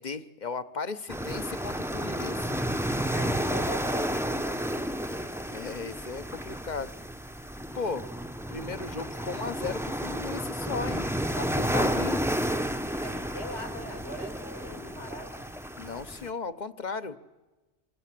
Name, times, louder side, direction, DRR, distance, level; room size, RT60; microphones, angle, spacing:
voice 1, 0.0-2.5 5.5-6.9 7.7-8.1 8.5-11.1 11.3-12.2 15.8-17.2, left 4 dB, 40° left, 12 dB, 1.0 m, -36 dB
sound 1, 1.1-16.3, equal, 5° right, 0.8 m, -31 dB
voice 2, 3.1-4.6 13.0-15.5, left 1 dB, 75° left, 6 dB, 4.1 m, -41 dB
26.5 x 26.0 x 7.5 m, 1.2 s
omnidirectional pair, 1.2 m